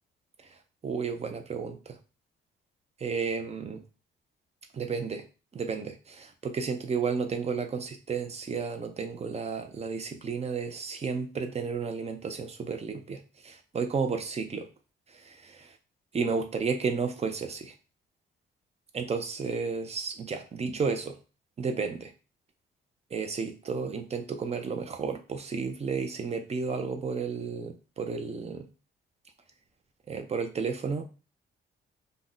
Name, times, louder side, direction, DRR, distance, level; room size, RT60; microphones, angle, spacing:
voice 1, 0.8-2.0 3.0-3.8 4.7-5.2 5.5-14.7 15.1-15.7 16.1-17.7 18.9-21.2 21.6-22.1 23.1-28.7 30.1-31.0, right 5 dB, 30° right, 6 dB, 0.6 m, -32 dB
2.6 x 2.2 x 3.8 m, 0.33 s
cardioid pair, 90°, 20 cm